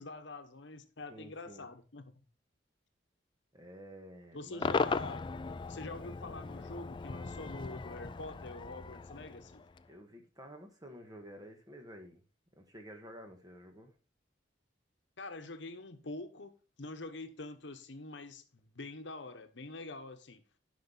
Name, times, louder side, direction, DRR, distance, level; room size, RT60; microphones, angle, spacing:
voice 1, 0.0-2.0 4.3-5.2 5.7-9.6 15.2-20.4, left 2 dB, 65° left, 1.0 m, -45 dB
voice 2, 1.1-1.7 3.5-4.8 9.9-12.2 12.6-13.9, equal, 20° right, 1.6 m, -51 dB
Cheering / Crowd / Fireworks, 4.6-9.9, left 4 dB, 25° left, 0.3 m, -37 dB
10.5 x 5.4 x 4.0 m
head